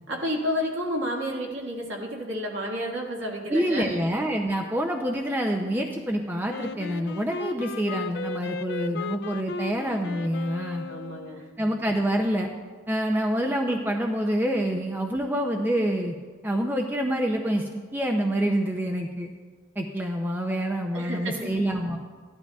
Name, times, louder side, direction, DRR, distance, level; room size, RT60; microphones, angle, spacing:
voice 1, 0.1-4.0 10.9-11.4 20.9-21.5, equal, 60° right, -2 dB, 1.8 m, -31 dB
voice 2, 3.5-10.8 11.6-12.5 12.9-16.1 16.4-19.3 19.8-22.0, equal, 10° right, 2 dB, 0.5 m, -27 dB
Wind instrument woodwind instrument, 6.5-11.5, left 4 dB, 55° left, 0.3 m, -35 dB
15.0 x 11.5 x 2.3 m, 1.5 s
head